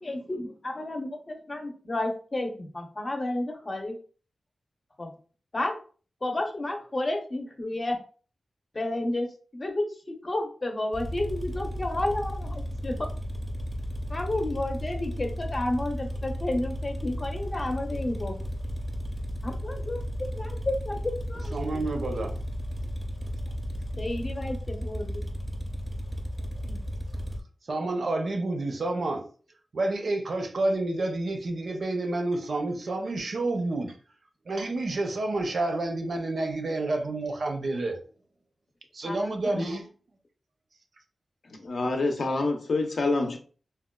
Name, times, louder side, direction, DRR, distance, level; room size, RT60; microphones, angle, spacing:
voice 1, 0.0-4.0 5.0-5.1 5.5-5.7 6.2-8.0 8.7-9.3 9.5-12.9 14.1-18.3 19.4-21.5 24.0-25.2 26.6-26.8 39.0-39.6, left 1 dB, 35° left, 0.7 m, -31 dB
sound 1, 10.9-27.4, equal, 5° right, 0.6 m, -34 dB
voice 2, 21.5-22.4 27.7-29.3 29.7-34.0 34.5-38.0 38.9-39.8, right 2 dB, 70° right, 0.5 m, -29 dB
voice 3, 41.5-43.4, left 3 dB, 75° left, 0.6 m, -27 dB
4.0 x 2.2 x 2.2 m
wide cardioid pair, 95°, 0 cm